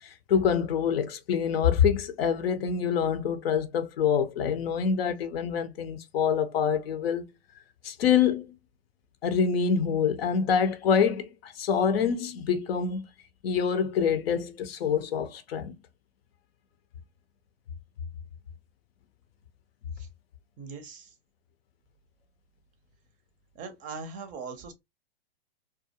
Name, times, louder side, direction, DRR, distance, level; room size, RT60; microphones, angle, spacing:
voice 1, 0.0-7.2 7.8-8.5 9.2-13.0 13.4-15.7, left 7 dB, 65° left, 0.6 m, -26 dB
voice 2, 20.6-21.1 23.5-24.7, right 5 dB, 25° right, 0.5 m, -40 dB
2.3 x 2.2 x 2.7 m
hypercardioid pair, 110°, 32 cm